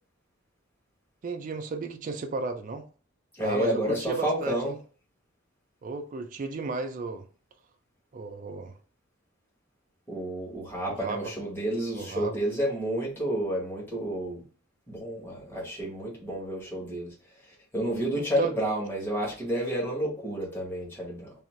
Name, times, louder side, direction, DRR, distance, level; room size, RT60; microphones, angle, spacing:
voice 1, 1.2-2.8 3.4-4.8 5.8-7.3 8.1-8.7 10.9-11.2 11.9-12.4 18.1-18.5, right 4 dB, 40° right, 0.3 m, -34 dB
voice 2, 3.4-4.7 10.1-14.4 14.9-17.1 17.7-21.3, right 1 dB, 10° left, 1.0 m, -30 dB
2.5 x 2.3 x 3.0 m
head